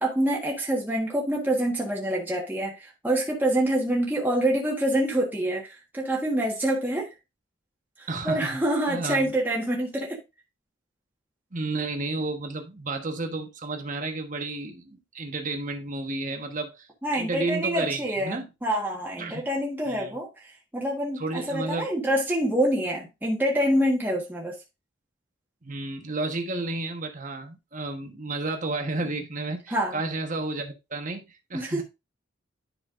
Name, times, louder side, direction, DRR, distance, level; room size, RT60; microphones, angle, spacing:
voice 1, 0.0-7.1 8.0-10.2 17.0-24.6 29.7-30.0 31.5-31.8, right 1 dB, 10° right, 1.4 m, -26 dB
voice 2, 8.1-8.6 8.9-9.3 11.5-16.9 17.1-18.5 19.2-19.4 19.9-20.1 21.2-21.9 25.6-31.8, right 2 dB, 40° right, 1.3 m, -32 dB
10.5 x 5.6 x 2.5 m
head